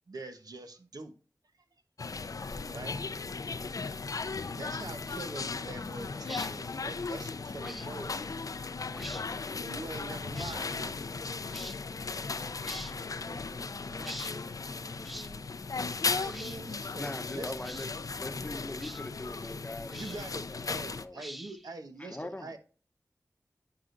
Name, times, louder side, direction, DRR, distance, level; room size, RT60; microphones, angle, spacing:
voice 1, 0.1-1.1 2.7-3.0 4.5-8.5 9.6-11.1 16.0-17.6 19.9-22.6, right 3 dB, 80° right, 1.0 m, -44 dB
sound 1, 2.0-21.1, left 4 dB, 65° left, 0.5 m, -37 dB
sound 2, 6.2-6.5 7.6-7.9 8.9-9.2 10.3-10.6 11.5-11.8 12.6-12.9 14.0-14.3 15.0-15.3 16.2-16.6 17.6-17.9 18.8-19.0 19.9-20.3 21.1-21.7, equal, ahead, 0.3 m, -44 dB
voice 2, 13.1-15.5, equal, 30° right, 1.0 m, -50 dB
voice 3, 17.0-17.9 18.2-20.2 20.5-21.2 22.0-22.6, left 1 dB, 25° left, 0.9 m, -41 dB
9.4 x 4.8 x 2.5 m
cardioid pair, 45°, 6 cm